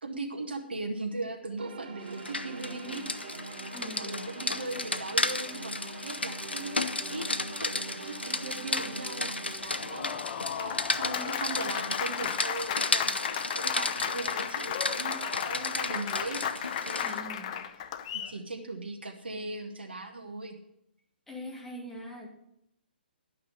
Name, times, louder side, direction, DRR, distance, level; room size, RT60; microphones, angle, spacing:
voice 1, 0.0-3.0 3.9-7.3 7.6-10.1 10.6-16.4 16.9-17.7 18.1-20.6, right 3 dB, 75° right, 3 dB, 1.8 m, -39 dB
sound 1, 1.6-11.6, right 3 dB, 60° right, 1.4 m, -44 dB
Rain, 2.1-17.2, left 2 dB, 85° left, 0.7 m, -34 dB
voice 2, 3.7-4.3 17.0-17.5 21.3-22.3, equal, 5° left, -1 dB, 1.9 m, -42 dB
Applause, 9.6-18.4, left 9 dB, 40° left, 0.7 m, -34 dB
12.0 x 5.8 x 8.0 m, 0.79 s
figure-of-eight pair, 130°, 6 cm